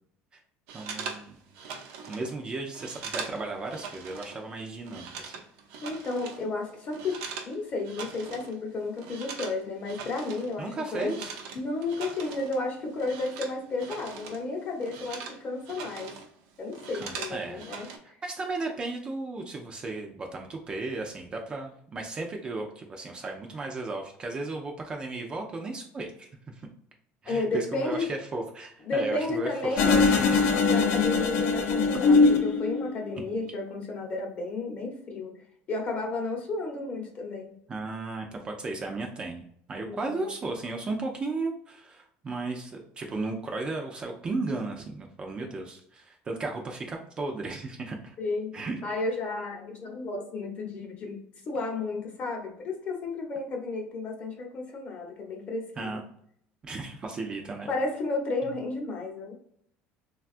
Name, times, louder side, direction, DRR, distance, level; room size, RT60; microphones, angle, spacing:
voice 1, 0.7-1.4 2.1-5.3 10.6-11.3 16.9-17.6 18.2-26.5 27.2-30.4 37.7-48.1 48.5-48.8 55.8-56.0 56.6-57.7, right 3 dB, 20° right, 2 dB, 0.3 m, -35 dB
sound 1, 0.7-4.4 4.7-7.5 7.8-8.6 8.8-14.4 14.7-16.3 16.6-18.0, right 5 dB, 85° right, 0.6 m, -41 dB
voice 2, 5.8-7.2 7.5-11.1 11.5-16.1 16.6-17.9 27.3-28.1 28.8-35.3 35.7-37.5 39.8-40.3 48.2-51.2 51.5-56.0 57.7-59.3, left 3 dB, 35° left, 1 dB, 0.8 m, -32 dB
sound 2, 29.8-33.1, left 4 dB, 65° left, 0.5 m, -22 dB
3.4 x 2.2 x 2.4 m, 0.65 s
cardioid pair, 160°, 4 cm